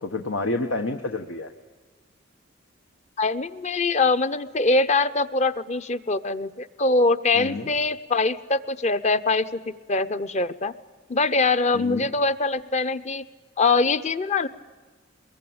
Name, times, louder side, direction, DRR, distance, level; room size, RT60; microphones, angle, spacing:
voice 1, 0.0-1.5 7.3-7.7 11.7-12.1, left 2 dB, 85° left, 5 dB, 1.3 m, -29 dB
voice 2, 3.2-10.7 11.1-13.2 13.6-14.5, left 3 dB, 35° left, 13 dB, 0.8 m, -23 dB
23.0 x 22.0 x 8.8 m, 1.4 s
head